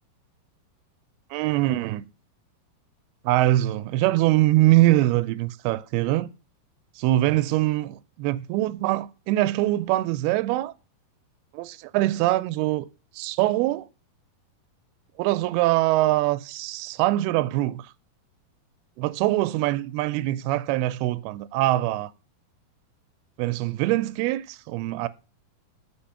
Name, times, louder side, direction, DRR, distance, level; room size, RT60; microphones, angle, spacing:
voice 1, 1.3-2.1 3.2-6.3 7.0-10.7 11.5-12.9 13.1-13.9 15.2-17.9 19.0-22.1 23.4-25.1, right 16 dB, 85° right, 2.5 m, -23 dB
6.8 x 5.2 x 5.6 m
omnidirectional pair, 4.5 m